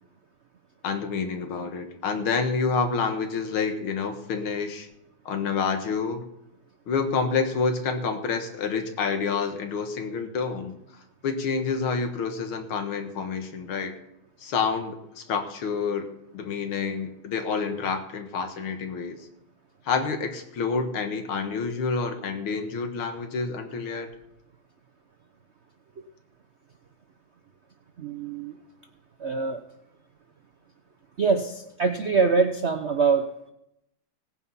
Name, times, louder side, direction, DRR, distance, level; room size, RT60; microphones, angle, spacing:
voice 1, 0.8-4.9 5.3-6.2 6.9-10.7 11.2-14.0 14.4-16.1 16.3-19.2 19.9-24.1, left 5 dB, 80° left, 7 dB, 2.2 m, -28 dB
voice 2, 28.0-28.6 29.2-29.6 31.2-33.3, right 5 dB, 65° right, 7 dB, 0.6 m, -24 dB
17.0 x 9.3 x 5.5 m, 0.82 s
omnidirectional pair, 2.3 m